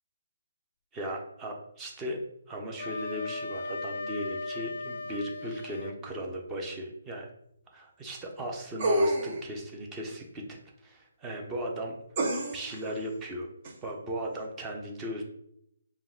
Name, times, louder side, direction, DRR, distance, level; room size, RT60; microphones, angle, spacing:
voice 1, 0.9-2.2 2.5-7.3 7.7-10.6 10.8-12.0 12.5-13.5 13.8-15.2, equal, 15° right, 1 dB, 0.8 m, -37 dB
Wind instrument woodwind instrument, 2.8-6.0, left 3 dB, 55° left, 0.4 m, -37 dB
sound 1, 8.8-9.5 12.2-12.8 13.6-13.7, right 1 dB, 40° right, 1.0 m, -27 dB
4.8 x 2.5 x 3.6 m, 0.74 s
hypercardioid pair, 155°, 0 cm